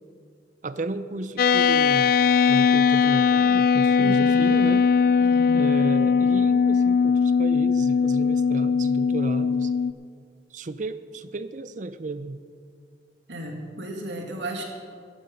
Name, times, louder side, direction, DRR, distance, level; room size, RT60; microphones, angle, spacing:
voice 1, 0.6-2.1 2.5-4.9 5.5-9.7 10.5-12.4, right 2 dB, 45° right, 13 dB, 0.5 m, -33 dB
sound 1, 1.4-9.9, left 6 dB, 50° left, 0.3 m, -20 dB
voice 2, 4.0-4.5 5.2-5.7 13.3-14.6, right 1 dB, 80° right, 1 dB, 2.1 m, -34 dB
14.5 x 9.9 x 5.3 m, 2.1 s
head